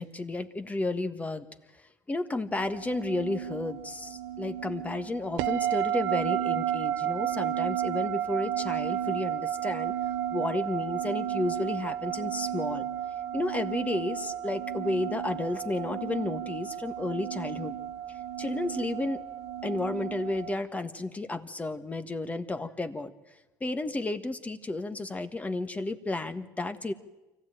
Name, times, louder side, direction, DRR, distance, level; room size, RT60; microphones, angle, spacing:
voice 1, 0.0-1.5 1.7-1.8 2.1-9.9 10.3-12.8 13.3-17.8 18.1-19.2 19.6-23.1 23.6-26.9, left 2 dB, 20° left, 10 dB, 1.5 m, -32 dB
sound 1, 2.6-20.6, right 11 dB, 80° right, 1.0 m, -32 dB
24.5 x 15.5 x 9.0 m, 1.1 s
supercardioid pair, 85°, 8 cm